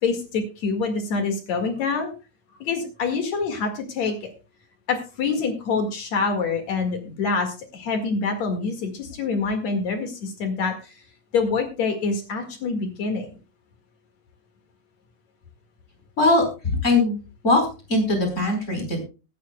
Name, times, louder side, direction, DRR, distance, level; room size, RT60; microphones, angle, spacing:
voice 1, 0.0-2.1 2.6-4.3 4.9-10.9 11.3-13.3, left 4 dB, 55° left, 4 dB, 2.8 m, -26 dB
voice 2, 16.2-17.2 17.4-19.0, left 2 dB, 20° left, 2 dB, 4.2 m, -21 dB
22.0 x 9.4 x 2.2 m, 0.31 s
omnidirectional pair, 4.2 m